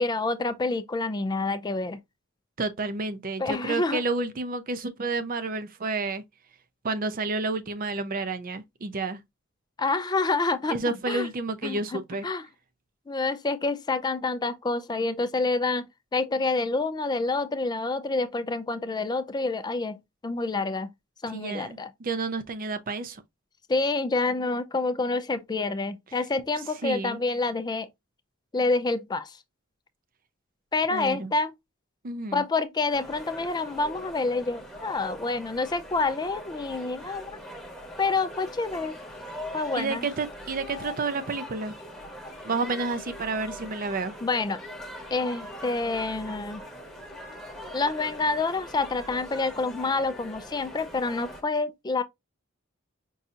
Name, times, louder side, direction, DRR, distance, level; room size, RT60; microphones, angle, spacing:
voice 1, 0.0-2.0 3.4-4.0 9.8-10.8 11.1-11.3 11.6-12.4 13.1-20.9 21.2-21.9 23.7-27.9 28.5-29.4 30.7-31.5 32.3-37.4 38.0-39.0 39.5-40.1 44.2-44.6 45.1-46.6 47.7-52.0, left 3 dB, 20° left, 0.4 m, -28 dB
voice 2, 2.6-6.2 6.8-9.2 10.7-12.3 21.3-23.2 26.8-27.2 30.9-31.3 32.0-32.4 39.7-41.7 42.4-44.1, right 3 dB, 45° right, 0.5 m, -30 dB
sound 1, 32.9-51.4, equal, 5° left, 1.0 m, -42 dB
5.5 x 2.7 x 2.4 m
head